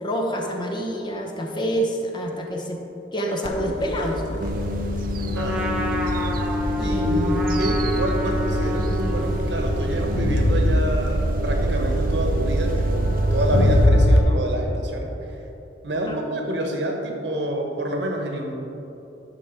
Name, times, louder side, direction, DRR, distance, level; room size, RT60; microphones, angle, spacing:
voice 1, 0.0-2.8 3.1-4.2 6.8-7.4 16.1-16.2, equal, 25° left, 0 dB, 1.0 m, -27 dB
Crowd, 3.4-14.2, left 1 dB, 80° left, 0.9 m, -25 dB
sound 1, 4.4-13.9, right 1 dB, 50° right, 0.5 m, -24 dB
Trumpet, 5.3-10.6, right 1 dB, 5° right, 0.8 m, -32 dB
voice 2, 5.3-5.9 6.8-15.4 15.8-18.6, equal, 75° right, 2 dB, 1.2 m, -28 dB
11.0 x 5.8 x 4.6 m, 3.0 s
head